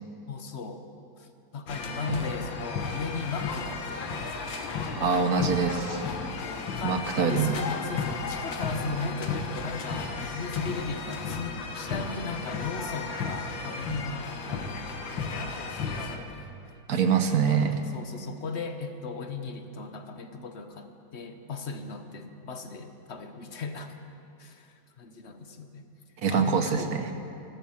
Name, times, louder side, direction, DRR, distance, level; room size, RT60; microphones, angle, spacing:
voice 1, 0.3-0.8 1.2-4.5 5.9-14.7 15.3-16.5 17.3-23.9 24.4-25.9 26.3-26.9, left 4 dB, 45° left, 7 dB, 1.0 m, -37 dB
sound 1, 1.7-16.2, left 4 dB, 80° left, 1.9 m, -34 dB
voice 2, 5.0-6.0 6.8-7.6 16.9-17.8 26.2-27.1, right 6 dB, 60° right, 7 dB, 1.3 m, -25 dB
15.5 x 12.5 x 7.2 m, 2.6 s
omnidirectional pair, 2.0 m